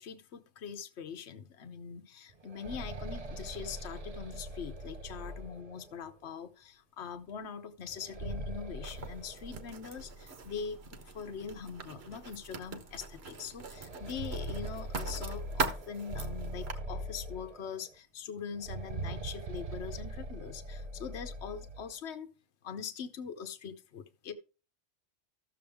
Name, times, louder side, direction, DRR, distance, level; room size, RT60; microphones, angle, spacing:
voice 1, 0.0-10.8 11.1-22.3 22.6-24.3, left 7 dB, 65° left, 8 dB, 1.2 m, -42 dB
sound 1, 2.3-6.1 7.9-10.1 10.4-10.5 11.4-11.5 12.0-12.1 13.7-17.9 18.5-21.9, right 1 dB, 40° right, 0.7 m, -41 dB
Writing, 8.8-16.7, right 4 dB, 60° right, 1.4 m, -41 dB
14.0 x 7.0 x 3.5 m, 0.34 s
omnidirectional pair, 1.2 m